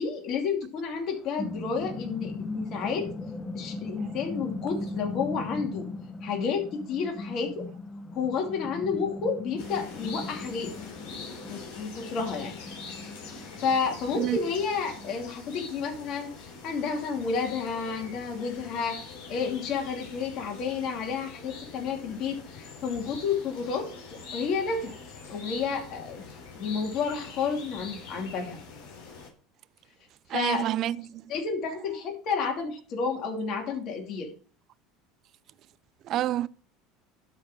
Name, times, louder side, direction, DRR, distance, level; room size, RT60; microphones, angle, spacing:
voice 1, 0.0-3.1 3.5-5.9 6.2-7.7 8.1-10.7 11.5-12.6 13.2-24.9 25.3-28.6 30.3-30.6 31.3-34.3, left 5 dB, 55° left, 2.7 m, -31 dB
sound 1, 0.9-15.2, left 3 dB, 25° left, 1.1 m, -39 dB
sound 2, 9.6-29.3, left 4 dB, 70° left, 3.2 m, -44 dB
voice 2, 30.3-31.2 36.0-36.5, right 13 dB, 50° right, 0.4 m, -28 dB
12.0 x 4.3 x 4.7 m
hypercardioid pair, 90°, 0 cm